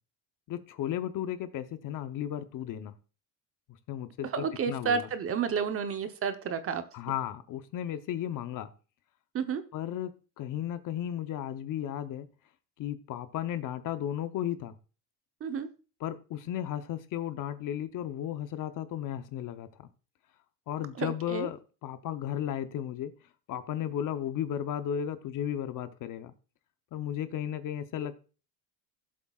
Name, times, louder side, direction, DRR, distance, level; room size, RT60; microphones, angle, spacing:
voice 1, 0.5-2.9 3.9-5.1 6.9-8.7 9.7-12.3 12.8-14.7 16.0-19.9 20.7-23.1 23.5-26.3 26.9-28.2, left 10 dB, 50° left, 11 dB, 0.8 m, -34 dB
voice 2, 4.2-6.8 9.3-9.6 15.4-15.7 20.9-21.5, right 6 dB, 35° right, 9 dB, 0.9 m, -31 dB
17.0 x 7.5 x 2.4 m, 0.35 s
cardioid pair, 145°, 40 cm